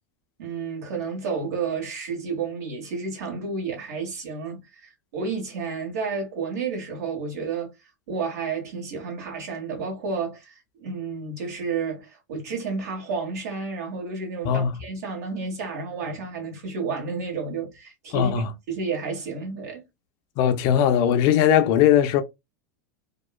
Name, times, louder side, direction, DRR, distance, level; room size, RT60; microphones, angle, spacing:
voice 1, 0.4-7.7 8.1-18.3 18.7-19.8, right 5 dB, 65° right, 1.4 m, -31 dB
voice 2, 14.4-14.7 18.1-18.5 20.4-22.2, left 9 dB, 50° left, 0.4 m, -19 dB
2.9 x 2.1 x 2.3 m
hypercardioid pair, 90°, 9 cm